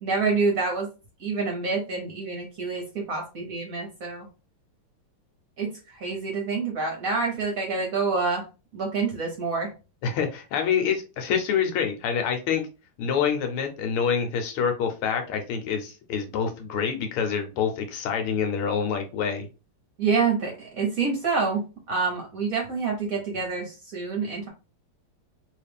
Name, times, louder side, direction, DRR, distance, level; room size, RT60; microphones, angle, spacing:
voice 1, 0.0-0.9 1.2-4.3 5.6-8.4 8.7-9.7 20.0-24.5, right 4 dB, 55° right, 1 dB, 1.1 m, -27 dB
voice 2, 10.0-12.7 13.0-19.5, left 7 dB, 80° left, 5 dB, 1.7 m, -26 dB
3.2 x 3.1 x 3.4 m, 0.31 s
omnidirectional pair, 2.4 m